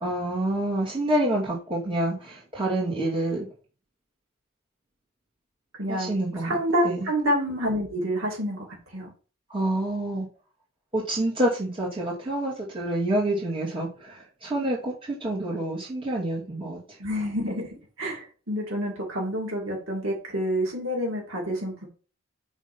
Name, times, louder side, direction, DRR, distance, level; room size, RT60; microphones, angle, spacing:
voice 1, 0.0-3.5 5.9-6.6 6.8-7.1 9.5-10.3 10.9-16.8, right 1 dB, 25° right, -6 dB, 2.6 m, -27 dB
voice 2, 5.8-6.1 6.4-8.6 8.9-9.1 17.0-17.7 18.0-21.9, equal, 75° right, -2 dB, 2.7 m, -28 dB
5.7 x 4.0 x 5.4 m, 0.37 s
head